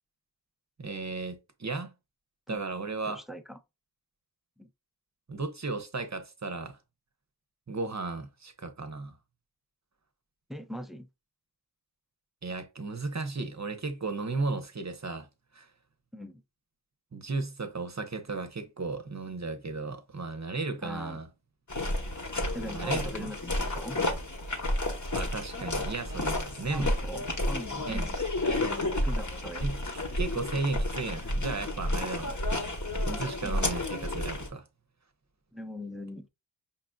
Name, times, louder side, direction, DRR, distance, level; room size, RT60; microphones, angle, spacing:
voice 1, 0.8-1.9 2.5-3.2 5.3-6.8 7.7-9.2 12.4-15.3 15.5-15.7 17.1-21.3 22.7-23.3 25.1-26.9 27.8-28.1 29.6-29.8 30.2-32.4 33.1-34.6, right 3 dB, 35° right, 0.9 m, -35 dB
voice 2, 3.0-3.6 4.6-4.7 10.5-11.1 16.1-16.4 20.8-21.2 22.5-24.0 26.7-28.2 28.6-29.7 33.4-33.6 35.5-36.3, equal, ahead, 0.5 m, -40 dB
sound 1, 21.7-34.5, left 1 dB, 40° left, 1.1 m, -31 dB
5.3 x 2.6 x 2.2 m
wide cardioid pair, 45°, 47 cm